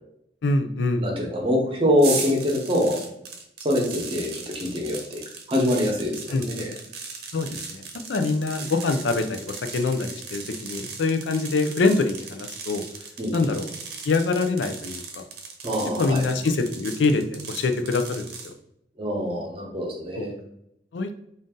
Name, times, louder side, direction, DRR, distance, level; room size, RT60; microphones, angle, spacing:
voice 1, 0.4-1.1 6.3-6.5 7.3-7.8 8.1-12.8 13.3-13.7 14.0-15.2 16.0-18.5 20.2-20.3 20.9-21.1, left 3 dB, 85° left, 7 dB, 0.4 m, -24 dB
voice 2, 1.0-3.0 3.6-5.2 5.5-6.7 13.2-13.6 15.6-16.3 19.0-20.3, left 1 dB, 30° right, 0 dB, 0.9 m, -24 dB
sound 1, 2.0-18.5, right 5 dB, 60° right, 0.7 m, -37 dB
3.9 x 2.5 x 3.6 m, 0.78 s
head